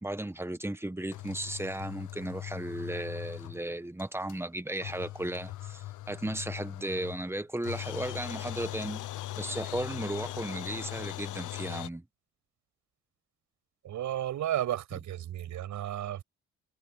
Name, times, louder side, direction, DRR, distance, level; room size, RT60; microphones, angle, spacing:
voice 1, 0.0-9.0 9.4-12.0, right 1 dB, 10° right, 1.5 m, -35 dB
sound 1, 1.1-3.7 4.0-4.1 4.3-4.4 4.8-7.4 7.6-11.9, left 15 dB, 80° left, 0.9 m, -40 dB
voice 2, 13.8-16.2, right 12 dB, 75° right, 6.7 m, -33 dB
cardioid pair, 90°, 30 cm